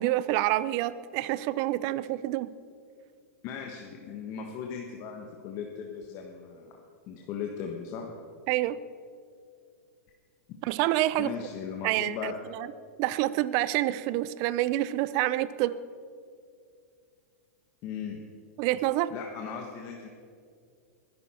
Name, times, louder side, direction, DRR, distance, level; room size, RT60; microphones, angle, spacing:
voice 1, 0.0-2.5 8.5-8.8 10.6-11.3 11.8-12.7 13.0-15.8 18.6-19.1, right 15 dB, 45° right, 16 dB, 0.6 m, -27 dB
voice 2, 3.4-6.8 7.1-8.1 11.2-12.4 17.8-18.2 19.1-20.1, left 7 dB, 40° left, 1 dB, 1.4 m, -38 dB
22.0 x 11.0 x 4.4 m, 2.3 s
hypercardioid pair, 135°, 8 cm